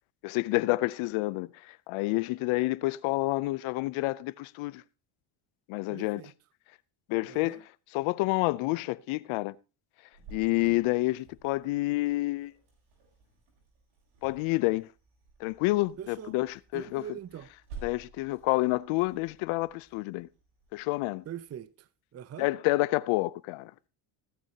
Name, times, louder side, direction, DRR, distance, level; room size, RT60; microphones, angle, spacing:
voice 1, 0.2-4.8 5.7-6.2 7.1-7.6 7.9-9.6 10.3-12.5 14.2-14.9 15.4-17.0 17.8-20.3 20.7-21.2 22.4-23.7, left 21 dB, 80° left, 0.6 m, -29 dB
voice 2, 5.9-6.3 7.2-7.6 16.0-16.4 16.7-17.5 21.3-22.5, right 10 dB, 30° right, 0.6 m, -43 dB
Cricket, 10.1-21.6, right 4 dB, 85° right, 7.6 m, -53 dB
20.5 x 9.5 x 2.8 m
cardioid pair, 105°, 49 cm